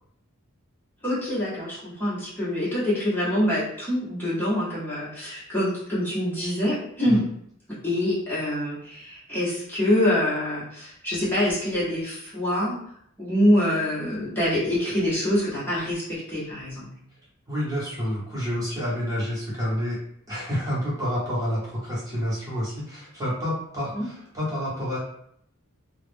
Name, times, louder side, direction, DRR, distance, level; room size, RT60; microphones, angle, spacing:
voice 1, 1.0-7.2 7.8-12.8 13.2-16.9 23.9-24.1, left 1 dB, 10° left, -10 dB, 0.8 m, -25 dB
voice 2, 17.5-20.0 20.3-25.0, equal, 15° right, -7 dB, 0.9 m, -29 dB
2.3 x 2.0 x 3.2 m, 0.70 s
head